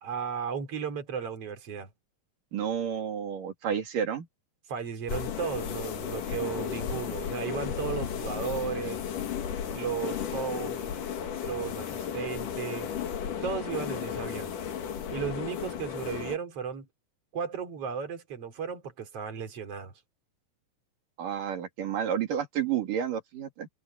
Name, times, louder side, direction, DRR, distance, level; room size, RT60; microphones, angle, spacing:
voice 1, 0.0-1.9 4.7-9.0 9.7-10.9 11.4-12.9 13.4-14.5 15.1-16.9 17.3-19.9, right 7 dB, 45° right, 4.2 m, -35 dB
voice 2, 2.5-4.3 21.2-23.7, right 8 dB, 80° right, 4.3 m, -30 dB
sound 1, 5.1-16.4, left 8 dB, 75° left, 3.7 m, -34 dB
open air
omnidirectional pair, 3.7 m